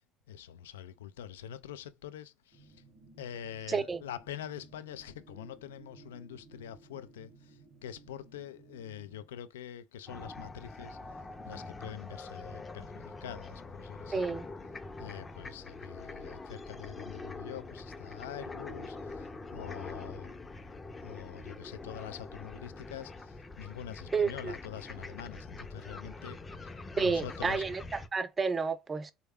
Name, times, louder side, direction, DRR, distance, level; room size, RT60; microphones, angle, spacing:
voice 1, 0.3-2.7 3.2-11.0 11.5-14.2 15.0-20.4 21.0-26.4 26.6-27.6, left 10 dB, 90° left, 0.3 m, -45 dB
sound 1, 2.5-9.3, right 3 dB, 65° right, 0.8 m, -57 dB
voice 2, 3.7-4.0 14.1-14.5 24.1-24.5 27.0-29.1, right 5 dB, 25° right, 0.5 m, -31 dB
sound 2, 10.1-28.1, left 3 dB, 25° left, 0.5 m, -44 dB
3.4 x 2.2 x 3.4 m
hypercardioid pair, 75°, 0 cm